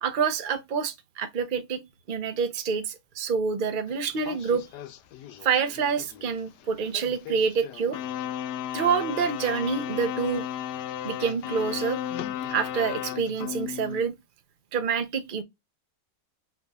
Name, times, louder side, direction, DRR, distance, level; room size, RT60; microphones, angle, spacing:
voice 1, 0.0-1.8 2.1-4.6 5.4-8.0 8.7-10.4 11.0-12.0 12.5-14.1 14.7-15.4, right 6 dB, 50° right, 0.6 m, -27 dB
sound 1, 3.9-14.0, left 11 dB, 85° left, 1.2 m, -35 dB
6.0 x 3.0 x 2.3 m
omnidirectional pair, 1.8 m